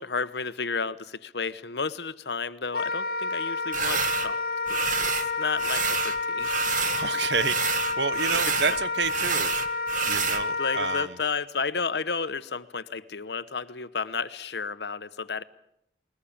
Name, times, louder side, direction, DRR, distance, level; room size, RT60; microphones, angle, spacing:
voice 1, 0.0-4.4 4.7-6.5 8.3-8.4 10.6-15.4, left 5 dB, 75° left, 1.0 m, -32 dB
Wind instrument woodwind instrument, 2.7-11.1, left 3 dB, 55° left, 1.0 m, -29 dB
sound 1, 3.7-4.3 4.7-5.3 5.6-7.1 7.3-10.4, right 7 dB, 45° right, 1.5 m, -29 dB
voice 2, 6.9-9.5 10.0-11.1, right 5 dB, 80° right, 1.0 m, -29 dB
21.5 x 20.0 x 8.7 m
head